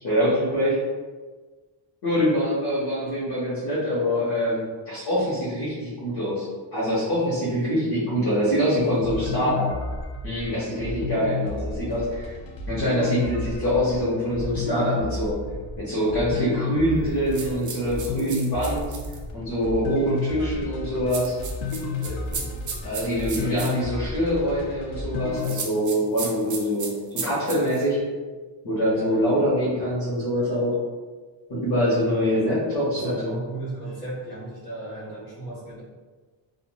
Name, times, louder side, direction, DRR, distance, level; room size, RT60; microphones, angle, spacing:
voice 1, 0.0-0.8 2.0-9.7 10.2-12.3 12.7-15.4 15.8-18.9 19.3-21.3 22.8-28.0 28.6-30.8 31.5-33.3, equal, 50° left, -9 dB, 1.0 m, -24 dB
voice 2, 8.6-9.5 10.9-11.1 22.0-22.6 28.9-29.4 32.5-32.6 32.9-35.8, right 2 dB, 20° left, -13 dB, 1.2 m, -36 dB
sound 1, 9.0-25.6, left 4 dB, 85° left, 0.6 m, -32 dB
Beads-Christmas-Bells-Shake by-JGrimm, 17.3-19.2 21.1-23.7 25.4-27.8, right 5 dB, 40° right, 0.4 m, -34 dB
3.0 x 2.4 x 2.2 m, 1.4 s
cardioid pair, 120°, 47 cm